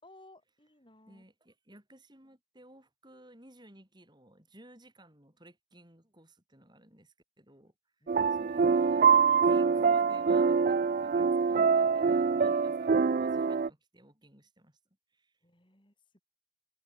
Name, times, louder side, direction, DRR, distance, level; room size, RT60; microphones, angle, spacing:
voice 1, 0.0-1.2 8.0-8.5 15.4-16.2, left 2 dB, 25° left, 4.8 m, -59 dB
voice 2, 1.1-7.7 8.0-14.8 15.1-15.3, right 1 dB, 20° right, 6.0 m, -56 dB
sound 1, 8.1-13.7, right 5 dB, 40° right, 0.3 m, -25 dB
head